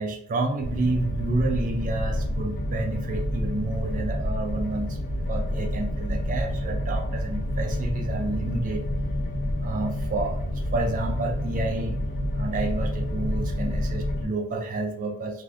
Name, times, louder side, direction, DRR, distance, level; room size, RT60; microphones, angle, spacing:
voice 1, 0.0-8.9 9.6-12.0 12.3-15.4, right 2 dB, 35° right, 2 dB, 0.3 m, -30 dB
sound 1, 0.6-14.3, equal, 40° left, 0.4 m, -29 dB
2.4 x 2.2 x 3.4 m, 0.68 s
head